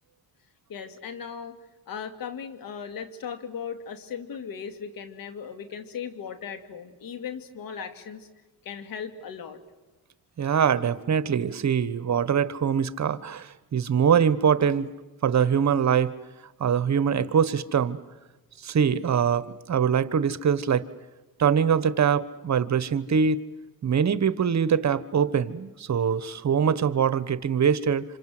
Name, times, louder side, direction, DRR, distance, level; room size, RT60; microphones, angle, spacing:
voice 1, 0.7-1.6 1.9-8.3 8.6-9.6, left 7 dB, 70° left, 8 dB, 2.4 m, -37 dB
voice 2, 10.4-14.9 15.2-16.1 16.6-18.0 18.6-20.9 21.4-23.4 23.8-28.0, right 7 dB, 50° right, 15 dB, 1.2 m, -23 dB
27.5 x 26.0 x 7.8 m, 1.1 s
cardioid pair, 75°, 36 cm